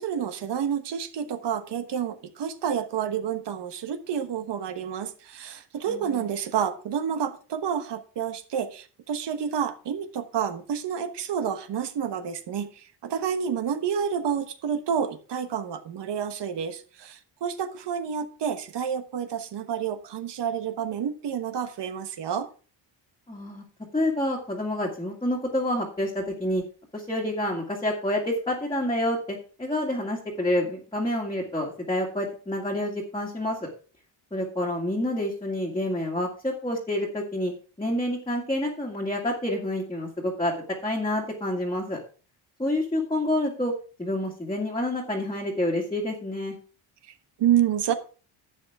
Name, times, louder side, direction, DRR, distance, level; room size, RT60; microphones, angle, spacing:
voice 1, 0.0-22.5 47.1-47.9, right 8 dB, 60° right, 10 dB, 1.3 m, -29 dB
voice 2, 5.9-6.3 23.3-23.6 23.9-26.6 26.9-33.7 34.3-37.5 37.8-40.6 40.8-42.0 42.6-43.7 44.0-46.6, left 1 dB, 10° left, -3 dB, 2.0 m, -28 dB
11.5 x 8.2 x 3.6 m, 0.39 s
cardioid pair, 140°, 46 cm